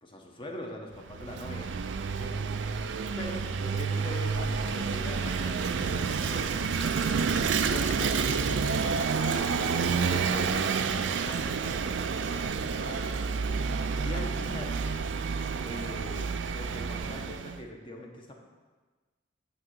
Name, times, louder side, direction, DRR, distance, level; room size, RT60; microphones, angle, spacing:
voice 1, 0.0-1.7 2.1-2.4 3.2-8.1 9.1-13.1 13.9-14.8 15.6-18.3, left 1 dB, 25° left, 1 dB, 1.1 m, -42 dB
Vehicle / Engine, 1.0-17.6, right 5 dB, 70° right, 0.4 m, -29 dB
sound 1, 4.3-9.8, left 5 dB, 90° left, 0.4 m, -45 dB
9.6 x 3.9 x 7.2 m, 1.3 s
head